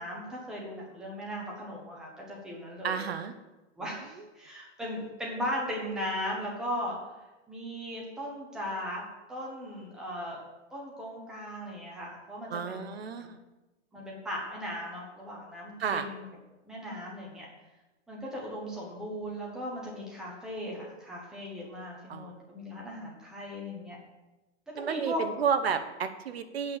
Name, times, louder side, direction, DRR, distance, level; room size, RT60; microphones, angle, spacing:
voice 1, 0.0-3.0 3.8-7.0 7.5-9.0 9.3-10.4 10.7-13.0 13.9-16.2 16.6-17.5 18.1-24.0 24.7-25.2, equal, ahead, -4 dB, 1.0 m, -37 dB
voice 2, 2.8-3.3 4.2-4.3 12.5-13.4 15.8-16.1 22.1-22.3 24.8-26.8, right 6 dB, 55° right, 10 dB, 0.9 m, -31 dB
8.5 x 6.5 x 7.1 m, 1.1 s
hypercardioid pair, 175°, 36 cm